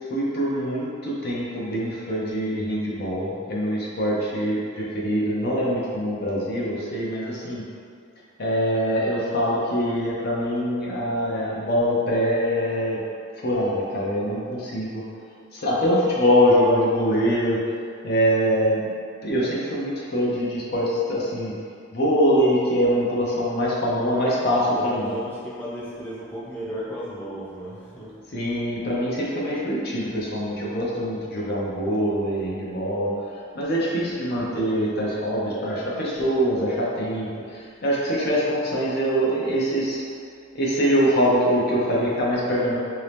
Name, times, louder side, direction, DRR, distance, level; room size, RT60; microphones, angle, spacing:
voice 1, 0.1-7.6 8.4-13.0 13.4-15.0 15.5-17.6 18.0-18.9 19.2-21.5 21.9-25.1 28.3-33.1 33.5-40.0 40.5-42.8, equal, 55° left, -5 dB, 0.6 m, -23 dB
voice 2, 24.3-28.2, equal, 10° left, -9 dB, 0.6 m, -35 dB
2.9 x 2.7 x 3.3 m, 2.2 s
head